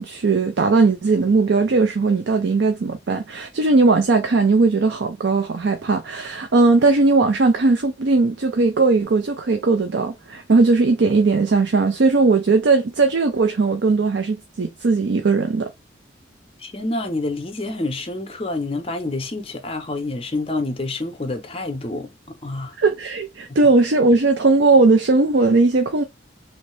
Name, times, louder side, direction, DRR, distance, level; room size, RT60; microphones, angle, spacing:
voice 1, 0.0-15.7 22.8-26.0, right 3 dB, 70° right, 0.5 m, -18 dB
voice 2, 16.6-22.7, left 2 dB, 30° left, 0.7 m, -28 dB
3.1 x 2.7 x 3.1 m
head